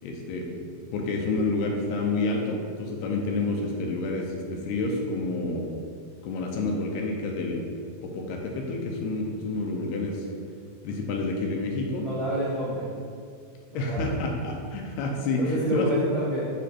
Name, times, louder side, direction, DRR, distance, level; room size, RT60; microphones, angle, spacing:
voice 1, 0.0-0.5 0.9-5.7 6.2-7.6 8.0-10.3 10.8-12.1 13.7-15.9, left 3 dB, 80° left, 1 dB, 2.6 m, -29 dB
voice 2, 12.0-12.9 13.7-14.2 15.4-16.4, right 1 dB, 60° right, -11 dB, 1.3 m, -28 dB
10.0 x 3.4 x 4.2 m, 2.3 s
omnidirectional pair, 4.9 m